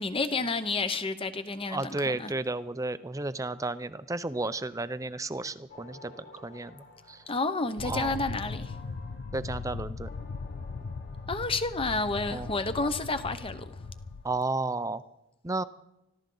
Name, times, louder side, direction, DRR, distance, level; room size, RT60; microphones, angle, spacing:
voice 1, 0.0-2.3 7.3-8.7 11.3-13.6, left 3 dB, 25° left, 0.9 m, -30 dB
voice 2, 1.7-7.2 7.8-8.2 9.3-10.1 12.3-12.5 14.2-15.0 15.4-15.6, right 2 dB, 15° right, 0.5 m, -33 dB
sound 1, 5.7-14.4, left 2 dB, 60° left, 7.2 m, -53 dB
sound 2, 7.8-14.2, left 4 dB, 85° left, 0.6 m, -39 dB
25.0 x 14.5 x 3.9 m
head